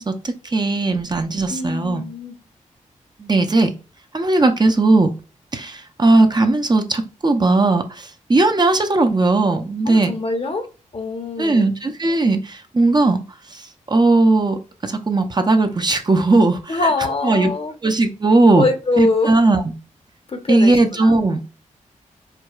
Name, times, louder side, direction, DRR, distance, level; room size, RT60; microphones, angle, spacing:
voice 1, 0.0-2.0 3.2-3.7 4.1-5.1 5.5-10.1 11.4-16.8 17.2-17.5 17.8-18.6 19.0-19.7 20.5-21.4, right 2 dB, 30° right, 0.6 m, -17 dB
voice 2, 1.5-2.4 9.8-10.7 10.9-11.7 16.7-17.7 18.5-19.4 20.3-21.1, left 3 dB, 45° left, 0.8 m, -23 dB
4.5 x 2.3 x 2.3 m
cardioid pair, 55°, 13 cm